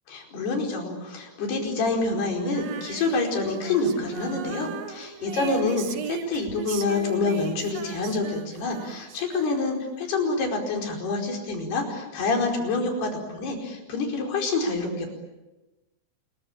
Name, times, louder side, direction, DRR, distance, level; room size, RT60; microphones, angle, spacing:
voice 1, 0.1-15.1, left 3 dB, 80° left, 2 dB, 6.9 m, -27 dB
Female singing, 2.4-9.9, right 8 dB, 60° right, 1.9 m, -38 dB
29.5 x 22.5 x 8.9 m, 1.1 s
omnidirectional pair, 4.5 m